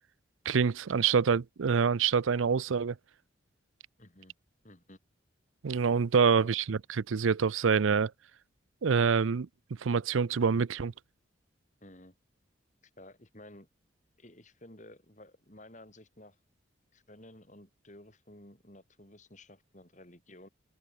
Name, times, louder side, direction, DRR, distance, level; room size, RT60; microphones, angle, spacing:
voice 1, 0.5-2.9 5.6-8.1 8.8-9.5 9.8-10.9, right 6 dB, 85° right, 0.5 m, -26 dB
voice 2, 4.0-4.3 4.6-5.0 6.1-6.5 11.8-12.1 13.0-13.7 14.2-16.4 16.9-20.5, left 1 dB, 40° left, 4.1 m, -53 dB
head